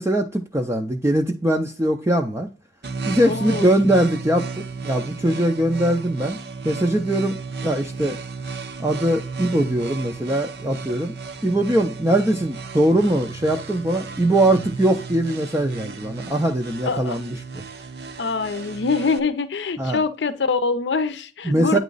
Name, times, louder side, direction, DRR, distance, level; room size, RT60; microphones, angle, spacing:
voice 1, 0.0-2.5 3.1-6.4 6.6-7.4 7.6-8.2 8.8-11.1 11.4-17.4 19.8-20.0 21.4-21.8, right 1 dB, 15° right, 0.4 m, -21 dB
sound 1, 2.8-19.2, right 4 dB, 60° right, 0.7 m, -34 dB
voice 2, 3.2-3.7 16.9-17.2 18.2-21.8, left 4 dB, 75° left, 0.6 m, -24 dB
9.1 x 3.1 x 3.9 m
head